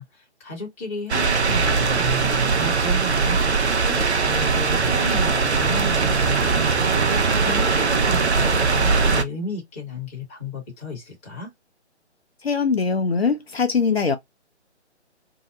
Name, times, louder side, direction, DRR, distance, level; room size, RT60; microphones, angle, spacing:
voice 1, 0.0-11.5, left 2 dB, 10° left, 0.8 m, -34 dB
sound 1, 1.1-9.2, right 4 dB, 70° right, 0.6 m, -20 dB
voice 2, 12.4-14.2, left 5 dB, 60° left, 0.5 m, -21 dB
2.7 x 2.0 x 3.7 m
figure-of-eight pair, 145°, 35 cm